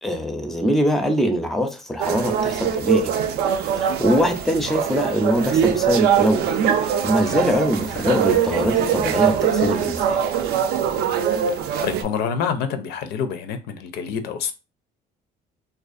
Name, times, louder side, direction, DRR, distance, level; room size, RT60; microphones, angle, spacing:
voice 1, 0.0-3.1 3.8-6.5 7.0-10.2, equal, ahead, 0.4 m, -22 dB
sound 1, 2.0-12.0, right 8 dB, 70° right, 0.4 m, -22 dB
voice 2, 11.8-14.5, left 7 dB, 75° left, 0.4 m, -26 dB
2.4 x 2.4 x 2.5 m
cardioid pair, 110°, 17 cm